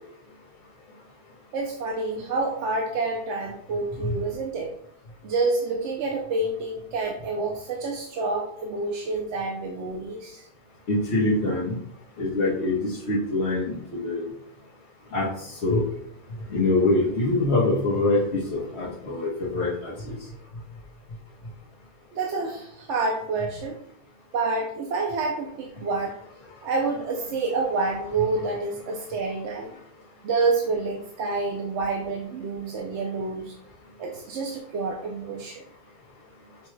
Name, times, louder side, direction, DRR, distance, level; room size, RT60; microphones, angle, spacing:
voice 1, 1.5-4.7 5.2-10.5 22.1-23.8 24.3-26.1 26.6-29.7 30.2-33.5 34.0-35.6, right 3 dB, 75° right, 0 dB, 0.9 m, -28 dB
voice 2, 10.9-11.8 12.2-14.2 15.1-15.9 16.5-20.2, left 2 dB, 65° left, -7 dB, 1.2 m, -24 dB
5.7 x 2.2 x 3.1 m, 0.67 s
omnidirectional pair, 1.2 m